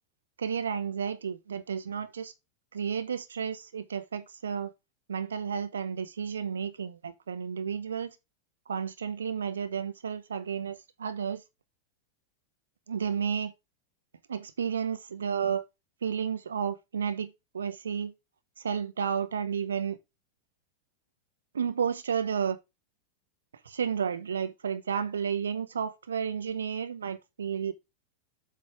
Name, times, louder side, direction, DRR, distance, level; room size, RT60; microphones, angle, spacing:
voice 1, 0.4-2.3 2.7-4.7 5.1-8.1 8.7-11.4 12.9-13.5 14.3-15.6 16.0-18.1 18.6-20.0 21.5-22.6 23.6-27.7, right 7 dB, 70° right, 0.7 m, -32 dB
7.8 x 3.2 x 4.8 m
figure-of-eight pair, 90°, 0 cm